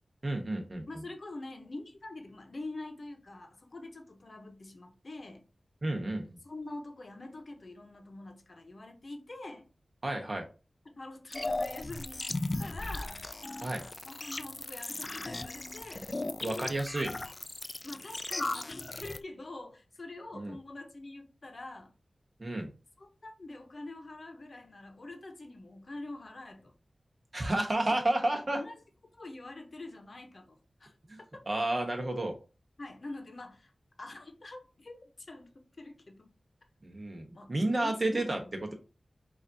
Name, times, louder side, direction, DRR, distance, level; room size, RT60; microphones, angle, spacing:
voice 1, 0.2-1.0 5.8-6.4 10.0-10.4 13.6-13.8 16.4-17.1 20.3-20.5 22.4-22.7 27.3-28.6 31.1-31.2 31.5-32.4 36.8-38.4, right 1 dB, 50° right, 1.0 m, -31 dB
voice 2, 0.9-5.4 6.4-9.7 11.0-13.2 14.0-16.2 17.8-21.9 23.0-26.7 27.9-28.0 28.5-28.7 29.2-30.9 31.3-31.4 32.8-33.7 34.0-35.0 35.3-35.5 35.8-36.3 37.3-38.7, left 2 dB, 60° left, 0.8 m, -45 dB
sound 1, 11.3-19.2, left 2 dB, 40° left, 0.3 m, -37 dB
5.0 x 2.5 x 2.7 m
cardioid pair, 45°, 0 cm